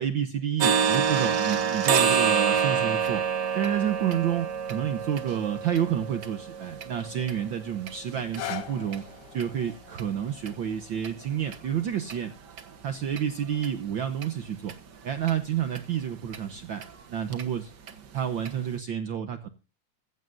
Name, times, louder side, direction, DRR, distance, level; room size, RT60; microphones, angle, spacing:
voice 1, 0.0-3.2 3.5-9.0 9.3-12.3 12.8-14.7 15.0-16.8 17.1-19.5, right 9 dB, 85° right, 8 dB, 1.0 m, -29 dB
sound 1, 0.6-8.4 8.9-9.0 9.4-9.5 10.0-10.1 10.5-10.6 11.0-11.1 11.5-11.6 12.1-12.2 12.6-12.7 13.2-13.3 13.6-13.7 14.2-14.3 14.7-14.8 15.3-15.4 15.8-15.9 16.3-16.4 16.8-16.9 17.3-17.4 17.9-18.0 18.5-18.6, right 7 dB, 50° right, 1.3 m, -27 dB
sound 2, 8.1-14.2 14.9-15.0, left 10 dB, 85° left, 2.9 m, -44 dB
15.5 x 15.0 x 2.6 m, 0.30 s
omnidirectional pair, 3.3 m